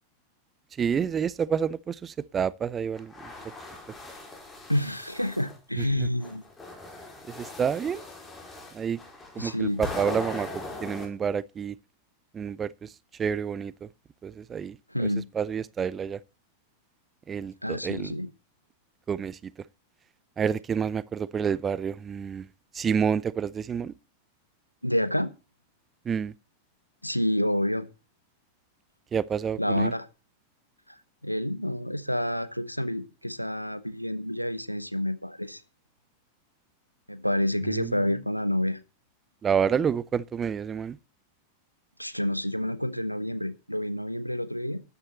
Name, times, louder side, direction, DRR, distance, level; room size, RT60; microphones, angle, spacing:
voice 1, 0.8-3.1 5.8-6.1 7.3-8.1 8.7-9.0 9.4-11.7 12.3-12.9 13.2-13.9 14.2-14.8 15.3-16.2 17.3-18.1 19.1-19.5 20.4-22.5 22.7-23.9 26.1-26.3 29.1-29.9 37.7-37.9 39.4-41.0, right 7 dB, 20° right, 0.6 m, -29 dB
sound 1, 3.0-5.6 6.2-11.1, left 2 dB, 15° left, 4.9 m, -40 dB
voice 2, 4.7-6.4 9.4-9.8 14.9-15.2 17.6-18.3 24.8-25.3 27.0-27.9 29.6-30.1 31.2-35.6 37.1-38.8 42.0-44.8, left 1 dB, 90° left, 1.2 m, -28 dB
13.0 x 9.7 x 4.3 m
figure-of-eight pair, 90°, 0 cm